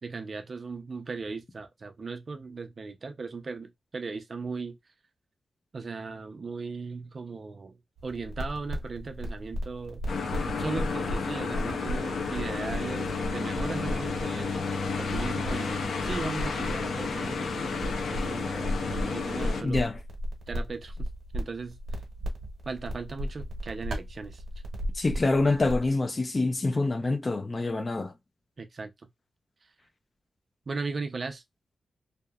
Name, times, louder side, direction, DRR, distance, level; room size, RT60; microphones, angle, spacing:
voice 1, 0.0-4.8 5.7-7.8 8.0-10.0 10.6-14.6 15.0-19.9 20.5-21.1 21.3-21.8 22.7-24.4 28.6-28.9 30.7-31.4, right 4 dB, 45° right, 0.5 m, -37 dB
sound 1, 8.0-25.9, equal, 65° right, 0.9 m, -36 dB
sound 2, 10.1-19.6, left 4 dB, 85° left, 0.5 m, -31 dB
voice 2, 19.6-20.0 25.0-28.1, left 3 dB, 30° left, 0.4 m, -26 dB
2.8 x 2.0 x 2.3 m
wide cardioid pair, 150°, 0 cm